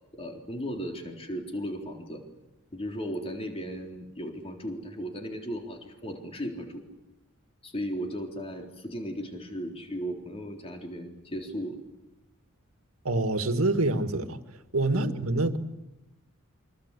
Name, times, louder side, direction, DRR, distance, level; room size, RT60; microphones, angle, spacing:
voice 1, 0.1-2.2 2.7-6.8 7.6-11.8 14.9-15.1, equal, 30° left, 3.8 m, -36 dB
voice 2, 13.0-14.4 14.7-15.6, right 2 dB, 85° right, 2.0 m, -26 dB
28.5 x 24.0 x 8.4 m
head